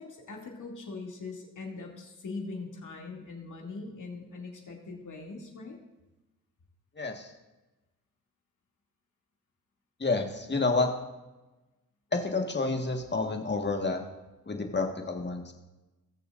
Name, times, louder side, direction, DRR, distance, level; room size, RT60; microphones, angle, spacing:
voice 1, 0.0-5.8, left 3 dB, 55° left, 0 dB, 2.6 m, -41 dB
voice 2, 7.0-7.3 10.0-10.9 12.1-14.0 14.5-15.5, left 3 dB, 30° left, 4 dB, 1.6 m, -29 dB
19.5 x 6.8 x 2.6 m, 1.1 s
supercardioid pair, 40°, 36 cm